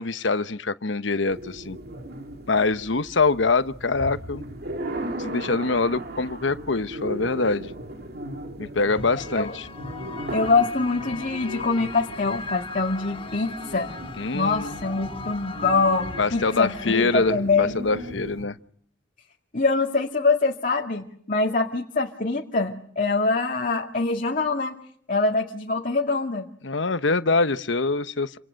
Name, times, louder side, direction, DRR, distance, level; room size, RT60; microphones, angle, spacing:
voice 1, 0.0-1.8 2.5-4.5 5.2-7.7 8.6-9.7 14.2-14.8 16.2-18.6 26.6-28.4, left 3 dB, 70° left, 1.0 m, -24 dB
sound 1, 1.3-18.5, right 1 dB, 55° right, 2.3 m, -37 dB
sound 2, 8.9-17.3, left 5 dB, 30° left, 1.3 m, -39 dB
voice 2, 10.3-14.0 14.3-17.8 19.5-24.7 25.1-26.5, left 3 dB, 45° left, 2.1 m, -24 dB
29.0 x 27.0 x 6.5 m
head